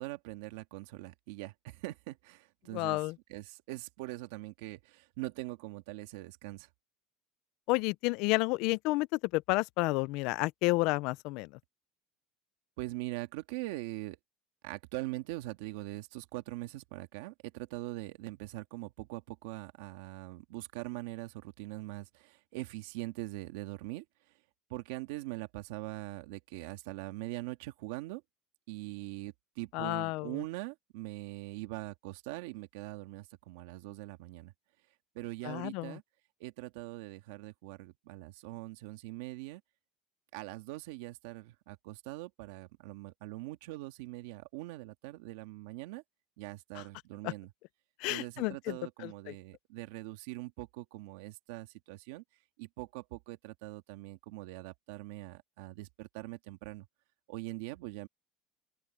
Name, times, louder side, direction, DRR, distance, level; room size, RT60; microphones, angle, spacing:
voice 1, 0.0-6.7 12.8-14.2 14.6-24.0 24.7-28.2 28.7-34.5 35.1-36.0 36.4-39.6 40.3-46.0 46.4-47.5 48.1-52.2 52.6-56.9 57.3-58.1, right 19 dB, 85° right, 1.7 m, -42 dB
voice 2, 2.7-3.1 7.7-11.5 29.7-30.3 35.4-36.0 47.2-47.3 48.0-49.3, left 23 dB, 55° left, 0.3 m, -31 dB
open air
cardioid pair, 180°, 0 cm